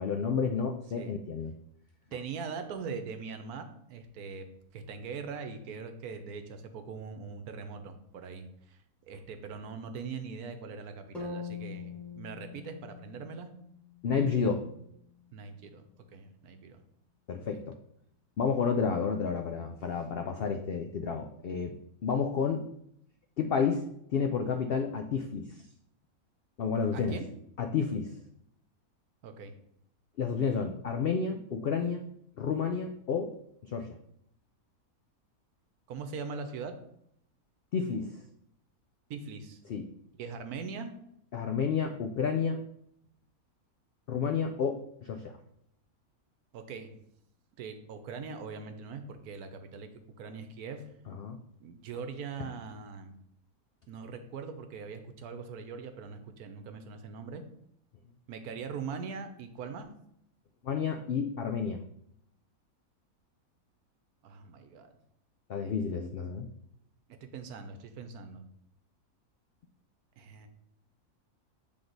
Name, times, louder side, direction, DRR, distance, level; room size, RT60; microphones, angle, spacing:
voice 1, 0.0-1.5 14.0-14.6 17.3-17.8 18.4-21.8 22.0-22.6 23.4-23.8 24.1-25.5 26.6-27.2 27.6-28.1 30.2-32.0 32.4-33.3 33.6-33.9 37.7-38.1 39.7-39.8 41.3-42.6 44.1-45.4 51.1-51.4 60.6-61.8 65.5-66.5, left 6 dB, 85° left, 5 dB, 0.5 m, -30 dB
voice 2, 2.1-4.5 4.7-8.8 9.1-13.5 15.3-15.8 16.1-16.8 17.5-17.6 26.9-27.3 29.2-29.5 35.9-36.8 39.1-39.6 40.2-40.9 46.5-46.9 47.6-49.9 50.2-50.9 51.6-53.1 53.9-57.4 58.3-59.9 64.2-64.9 67.1-68.4 70.2-70.5, right 5 dB, 80° right, 8 dB, 1.2 m, -41 dB
sound 1, 11.1-15.2, left 5 dB, ahead, 1.0 m, -44 dB
7.8 x 3.6 x 3.9 m, 0.72 s
omnidirectional pair, 1.6 m